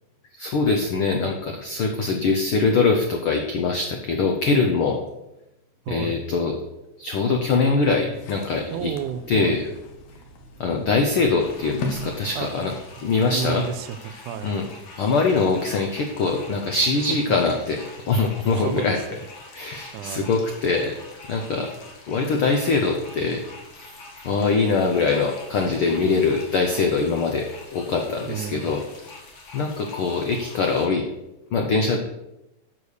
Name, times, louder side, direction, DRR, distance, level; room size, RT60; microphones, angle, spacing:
voice 1, 0.4-5.0 5.9-6.6 7.0-8.9 9.3-9.7 10.6-12.7 13.0-13.6 14.4-14.7 15.0-19.0 19.5-21.0 21.3-21.7 22.1-23.4 24.2-28.8 29.5-31.0 31.5-32.0, left 4 dB, 85° left, 3 dB, 1.1 m, -23 dB
voice 2, 5.9-6.2 8.7-9.6 12.4-12.7 13.3-14.5 18.5-18.9 19.9-20.3 28.3-28.8, right 9 dB, 85° right, 10 dB, 2.0 m, -31 dB
sound 1, 8.1-13.1, left 3 dB, 65° left, 2.0 m, -37 dB
sound 2, 11.4-30.9, left 3 dB, 45° left, 1.9 m, -45 dB
6.9 x 6.8 x 6.4 m, 0.91 s
omnidirectional pair, 3.5 m